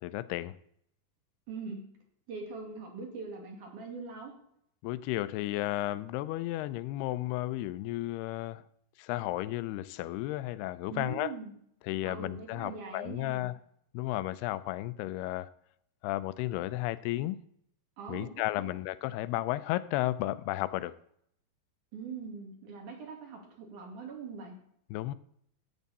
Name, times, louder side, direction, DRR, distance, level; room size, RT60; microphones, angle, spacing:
voice 1, 0.0-0.6 4.8-8.6 9.0-11.3 11.8-13.6 13.9-15.5 16.0-17.4 18.1-20.9 24.9-25.1, left 16 dB, 85° left, 2.6 m, -33 dB
voice 2, 1.5-1.8 2.3-4.3 10.9-11.5 12.0-13.5 18.0-18.3 18.6-18.7 21.9-24.6, right 5 dB, 55° right, 3.7 m, -42 dB
14.5 x 9.4 x 4.2 m
omnidirectional pair, 4.6 m